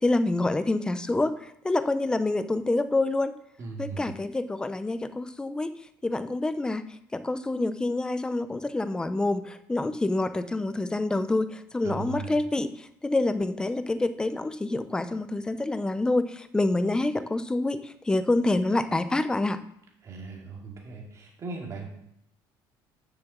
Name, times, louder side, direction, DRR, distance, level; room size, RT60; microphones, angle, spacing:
voice 1, 0.0-3.3 3.8-5.7 6.0-6.8 7.1-19.6, left 2 dB, 10° left, 11 dB, 0.5 m, -27 dB
voice 2, 3.6-4.1 11.8-12.4 20.0-21.9, right 4 dB, 35° right, -1 dB, 2.5 m, -38 dB
7.1 x 6.9 x 7.1 m, 0.74 s
cardioid pair, 150°, 9 cm